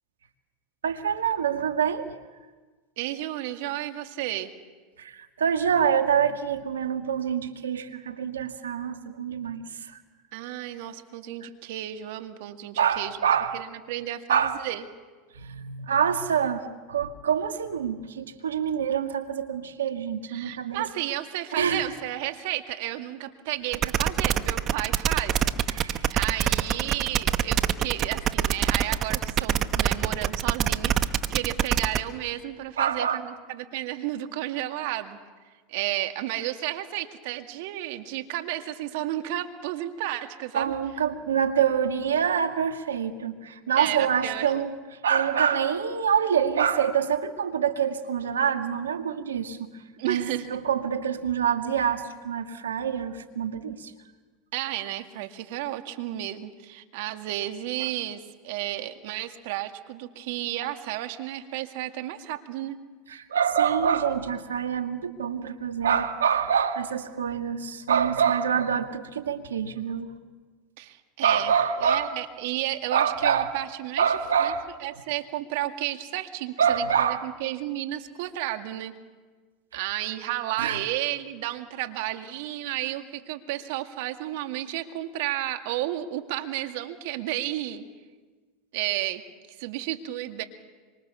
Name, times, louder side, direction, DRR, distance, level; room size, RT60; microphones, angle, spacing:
voice 1, 0.8-2.1 5.0-9.6 12.8-13.6 14.3-14.6 15.4-20.9 21.5-21.9 25.7-26.1 32.8-33.2 40.5-44.7 45.0-49.6 50.0-53.9 63.1-70.1 71.2-72.1 72.9-73.5 74.0-74.7 76.6-77.3 80.6-80.8, right 8 dB, 90° right, 7 dB, 1.9 m, -26 dB
voice 2, 3.0-4.5 10.3-13.2 13.5-14.8 20.3-25.7 26.1-35.2 35.7-40.7 43.8-44.5 50.0-50.5 54.5-62.8 70.8-71.5 71.8-74.1 74.4-74.5 74.8-78.9 79.7-87.8 88.7-89.2 89.6-90.4, right 14 dB, 65° right, 7 dB, 2.1 m, -32 dB
sound 1, 23.7-32.0, right 10 dB, 40° right, 1.2 m, -24 dB
26.0 x 25.0 x 7.1 m, 1.4 s
hypercardioid pair, 95°, 0 cm